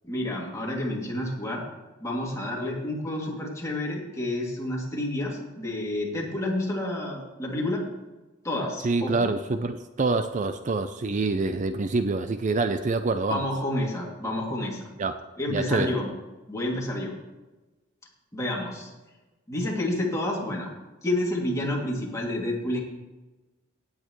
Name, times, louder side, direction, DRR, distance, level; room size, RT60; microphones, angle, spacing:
voice 1, 0.0-1.6 2.0-7.8 8.4-9.3 13.3-14.8 15.4-16.1 16.5-17.1 18.3-18.9 19.5-20.7 21.0-22.8, left 1 dB, 15° left, -3 dB, 2.6 m, -29 dB
voice 2, 8.8-13.4 15.0-15.2 15.5-15.9, right 3 dB, 40° right, 9 dB, 0.5 m, -26 dB
17.0 x 8.8 x 3.1 m, 1.1 s
head